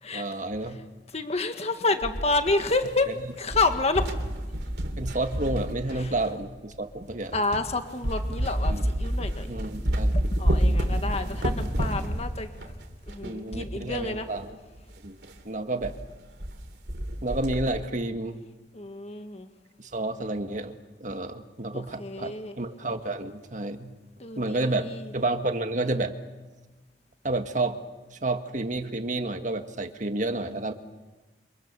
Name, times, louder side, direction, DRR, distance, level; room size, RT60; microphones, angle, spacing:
voice 1, 0.1-0.8 3.1-3.2 5.0-7.4 8.7-8.8 9.5-10.1 11.3-11.4 13.2-14.6 15.0-15.2 15.4-15.9 17.2-18.4 19.8-20.7 21.0-23.9 24.4-26.1 27.2-27.8 28.1-30.7, right 2 dB, 45° right, 7 dB, 1.7 m, -30 dB
voice 2, 1.1-4.1 6.0-6.1 7.3-9.5 10.1-12.7 13.1-14.3 18.7-19.5 21.7-22.5 24.2-25.1, left 3 dB, 35° left, 7 dB, 1.7 m, -29 dB
sound 1, 2.0-3.1 3.4-6.4 7.0-7.1 7.5-7.7 8.0-14.1 14.4-14.5 14.7-14.8 15.2-15.4 15.8-16.6 16.9-17.8, equal, 70° right, 3.1 m, -29 dB
28.5 x 26.0 x 6.9 m, 1.2 s
head